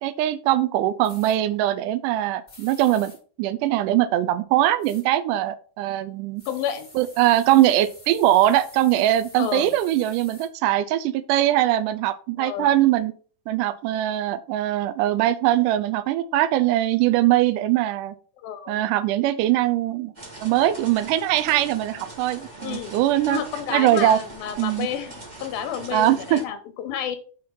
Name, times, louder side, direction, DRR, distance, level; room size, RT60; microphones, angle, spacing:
voice 1, 0.0-3.1 3.4-6.4 7.0-13.1 13.5-18.2 18.7-20.1 20.4-23.4 23.7-24.2 24.6-24.9 25.9-26.4, right 13 dB, 85° right, 11 dB, 1.9 m, -21 dB
sound 1, 1.0-1.4 2.5-3.2 4.8-5.0 6.4-10.5, left 2 dB, 15° left, 2.1 m, -48 dB
voice 2, 6.5-6.9 9.4-9.8 12.4-12.7 18.4-18.8 22.6-22.9 23.3-25.1 25.4-27.2, left 9 dB, 80° left, 8 dB, 2.8 m, -30 dB
sound 2, 20.1-26.4, right 2 dB, 20° right, 1.1 m, -41 dB
7.6 x 4.4 x 5.5 m, 0.41 s
omnidirectional pair, 4.2 m